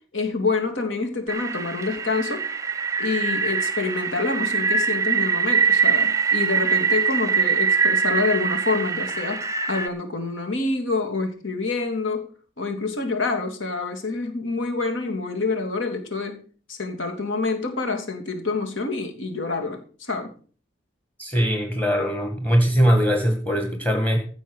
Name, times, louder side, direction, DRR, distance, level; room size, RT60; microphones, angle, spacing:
voice 1, 0.1-2.4 3.0-9.4 9.7-12.3 12.6-16.4 16.7-20.3, left 3 dB, 85° left, 4 dB, 3.0 m, -27 dB
sound 1, 1.3-9.9, right 6 dB, 15° right, 0.8 m, -23 dB
voice 2, 21.2-24.2, equal, 10° left, 4 dB, 1.9 m, -21 dB
16.0 x 6.3 x 6.5 m, 0.42 s
head